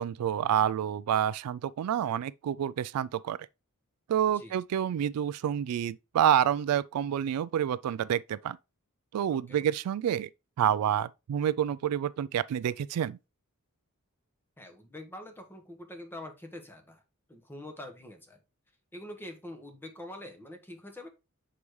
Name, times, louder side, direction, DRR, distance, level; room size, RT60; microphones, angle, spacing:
voice 1, 0.0-3.4 4.1-8.6 9.1-10.3 10.6-13.2, right 9 dB, 90° right, 0.3 m, -28 dB
voice 2, 9.3-9.7 14.6-17.0 17.3-18.4 18.9-21.1, left 1 dB, 10° left, 1.2 m, -45 dB
7.0 x 4.9 x 3.1 m
head